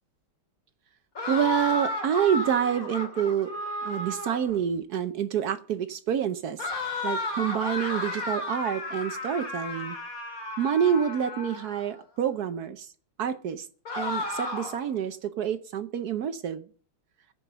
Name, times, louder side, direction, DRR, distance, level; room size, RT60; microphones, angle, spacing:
sound 1, 1.2-4.6 6.6-11.9 13.9-14.9, left 2 dB, 40° left, 2.8 m, -33 dB
voice 1, 1.3-3.5 3.8-6.7 7.0-10.0 10.6-12.9 13.2-13.7 14.0-16.7, right 9 dB, 70° right, 11 dB, 0.9 m, -27 dB
14.5 x 5.5 x 6.7 m, 0.43 s
omnidirectional pair, 2.4 m